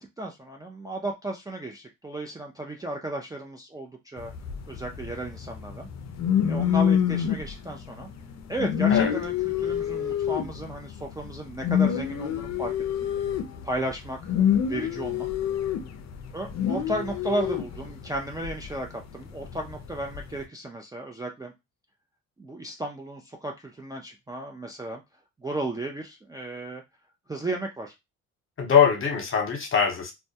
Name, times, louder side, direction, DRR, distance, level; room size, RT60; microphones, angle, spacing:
voice 1, 0.0-4.3 4.7-5.9 6.5-8.1 8.5-12.7 13.0-13.1 13.6-15.3 16.3-21.5 22.4-25.0 25.4-26.8 27.3-27.9, right 1 dB, 15° right, 0.3 m, -34 dB
sound 1, 4.2-18.7 19.2-20.4, left 9 dB, 60° left, 0.5 m, -27 dB
voice 2, 28.6-30.1, left 7 dB, 45° left, 0.9 m, -22 dB
2.2 x 2.1 x 2.6 m
cardioid pair, 90°, 30 cm